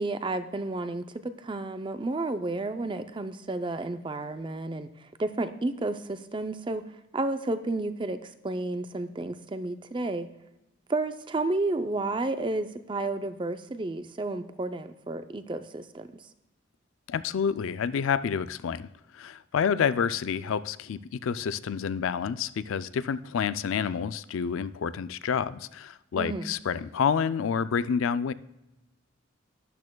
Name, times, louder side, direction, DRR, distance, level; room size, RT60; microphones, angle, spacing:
voice 1, 0.0-6.8 7.1-10.3 10.9-16.2 26.2-26.5, right 2 dB, 25° right, 10 dB, 0.5 m, -31 dB
voice 2, 17.1-18.9 19.1-28.3, left 7 dB, 80° left, 15 dB, 0.4 m, -28 dB
12.5 x 10.5 x 2.3 m, 0.96 s
head